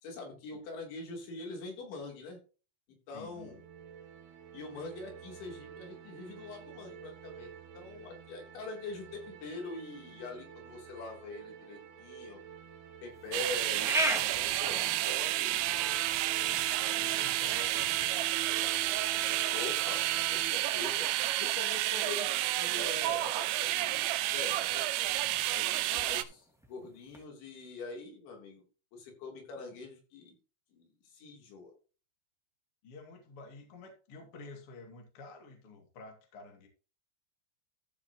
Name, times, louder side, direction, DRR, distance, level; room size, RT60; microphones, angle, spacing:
voice 1, 0.0-2.4 3.1-3.6 4.5-12.4 13.0-16.0 19.5-21.1 21.4-24.8 25.5-28.6 28.9-30.4 30.7-31.7, left 3 dB, 75° left, 0 dB, 5.7 m, -44 dB
voice 2, 3.1-3.5 16.9-18.3 25.7-26.1 32.8-36.7, left 3 dB, 40° left, 2 dB, 2.6 m, -51 dB
sound 1, 3.1-20.5, right 7 dB, 70° right, 3.4 m, -47 dB
sound 2, 13.1-27.2, right 1 dB, ahead, 0.8 m, -42 dB
sound 3, 13.3-26.2, right 15 dB, 85° right, 3.0 m, -30 dB
14.5 x 7.1 x 3.0 m, 0.35 s
omnidirectional pair, 5.3 m